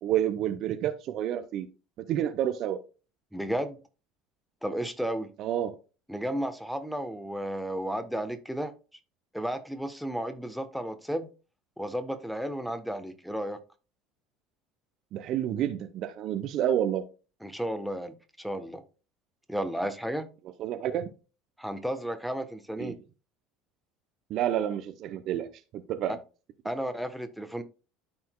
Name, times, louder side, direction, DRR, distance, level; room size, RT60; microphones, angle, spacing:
voice 1, 0.0-1.7 2.1-2.8 5.4-5.8 15.1-17.0 20.6-21.1 22.8-23.0 24.3-25.5 25.7-26.2, right 11 dB, 55° right, 0.6 m, -29 dB
voice 2, 3.3-3.8 4.6-5.3 6.1-8.7 9.3-11.3 11.8-13.6 17.4-18.8 19.5-20.3 21.6-22.9 26.1-26.2 26.6-27.6, equal, ahead, 1.1 m, -33 dB
12.5 x 4.4 x 2.3 m
hypercardioid pair, 70°, 0 cm